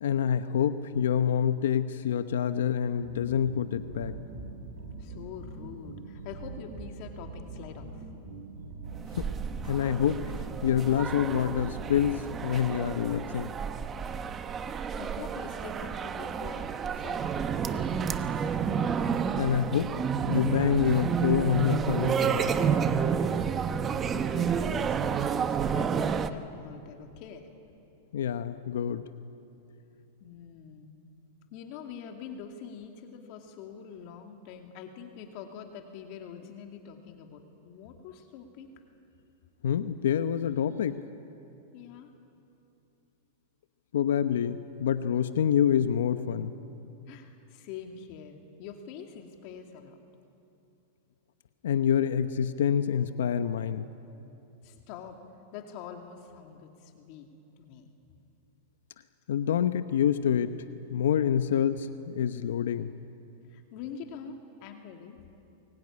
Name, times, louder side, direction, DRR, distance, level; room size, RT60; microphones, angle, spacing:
voice 1, 0.0-4.1 9.2-9.3 9.6-10.3 10.6-13.5 19.4-19.9 20.3-22.4 28.1-29.0 39.6-41.0 43.9-46.5 51.6-53.8 59.3-60.5 60.9-62.9, left 9 dB, 85° left, 10 dB, 0.9 m, -27 dB
sound 1, 3.0-12.5, right 3 dB, 80° right, 6.2 m, -42 dB
voice 2, 5.0-8.0 14.6-17.9 24.1-27.5 30.2-31.0 31.5-38.7 41.7-42.1 47.1-50.0 54.6-55.2 55.5-57.3 57.6-57.9 63.5-65.2, left 7 dB, 50° left, 3 dB, 2.3 m, -45 dB
sound 2, 9.0-26.3, right 7 dB, 20° right, 1.0 m, -30 dB
24.0 x 22.0 x 9.8 m, 2.8 s
supercardioid pair, 145°, 0 cm